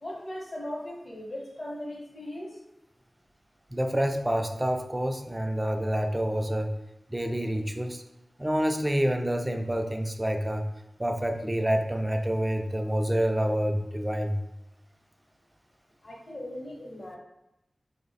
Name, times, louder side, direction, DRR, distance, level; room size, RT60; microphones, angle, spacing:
voice 1, 0.0-2.5 16.0-17.2, left 1 dB, 45° left, -3 dB, 0.7 m, -38 dB
voice 2, 3.7-6.7 7.1-8.0 8.4-10.6 11.0-14.4, equal, 15° right, 5 dB, 0.3 m, -27 dB
3.4 x 2.0 x 3.9 m, 0.88 s
wide cardioid pair, 85°, 0 cm